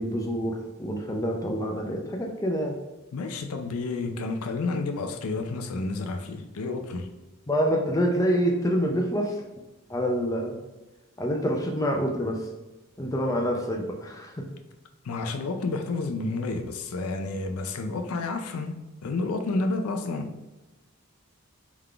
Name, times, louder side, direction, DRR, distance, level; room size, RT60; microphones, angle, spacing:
voice 1, 0.0-2.8 7.5-9.4 9.9-10.6 11.2-12.4 13.0-14.4, equal, 15° left, 0.5 m, -26 dB
voice 2, 3.1-7.1 15.0-20.4, left 3 dB, 80° left, 0.5 m, -30 dB
3.7 x 3.6 x 3.3 m
head